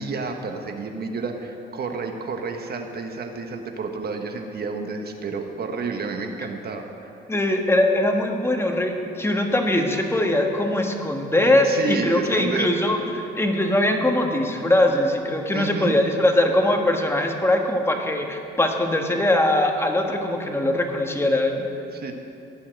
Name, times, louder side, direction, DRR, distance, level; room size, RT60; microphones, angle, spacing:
voice 1, 0.0-7.2 11.6-12.8 15.5-16.0 21.9-22.1, right 4 dB, 50° right, 4 dB, 1.3 m, -30 dB
voice 2, 7.3-21.6, left 1 dB, 10° left, 3 dB, 1.6 m, -21 dB
16.0 x 5.7 x 9.1 m, 2.7 s
cardioid pair, 90°, 20 cm